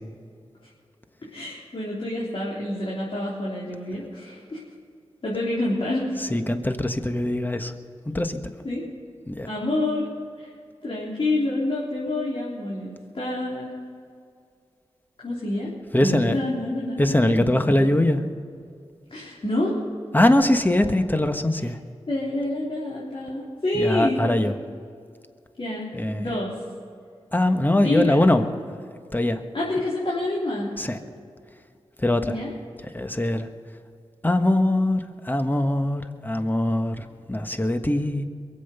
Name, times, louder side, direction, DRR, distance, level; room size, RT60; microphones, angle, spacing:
voice 1, 1.3-4.6 5.2-6.2 8.6-8.8 9.5-10.1 10.4-10.5 10.8-13.7 15.2-15.7 16.0-17.8 19.1-19.8 22.1-24.2 25.6-26.5 27.7-28.2 29.5-30.7 32.2-32.5, left 1 dB, 55° left, -6 dB, 3.6 m, -27 dB
voice 2, 6.2-7.7 8.0-8.4 9.3-9.5 15.9-16.4 17.0-18.2 20.1-21.8 23.7-24.5 25.9-26.4 27.3-28.4 29.1-29.4 30.8-31.0 32.0-32.4 32.9-33.5 34.2-38.2, left 1 dB, 15° left, 7 dB, 1.4 m, -22 dB
22.5 x 7.9 x 6.8 m, 2.4 s
cardioid pair, 45°, 11 cm